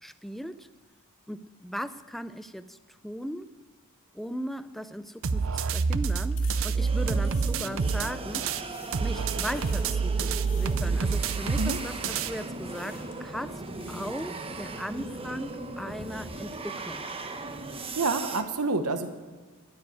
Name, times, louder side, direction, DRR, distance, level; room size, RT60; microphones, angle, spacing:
voice 1, 0.0-0.7 1.3-2.8 3.0-3.5 4.1-8.5 9.0-11.9 12.2-13.6 13.9-17.0, equal, ahead, 13 dB, 0.5 m, -37 dB
sound 1, 5.0-8.1 8.4-9.2 9.5-10.0 10.4-10.9 11.6-12.2 12.6-13.2 13.6-14.4, left 7 dB, 65° left, 2.8 m, -52 dB
sound 2, 5.2-8.6 8.9-12.3, right 5 dB, 65° right, 0.6 m, -27 dB
sound 3, 6.8-18.4, right 2 dB, 25° right, 0.9 m, -38 dB
voice 2, 18.0-19.1, right 3 dB, 80° right, 8 dB, 1.1 m, -28 dB
12.0 x 9.4 x 9.4 m, 1.4 s
head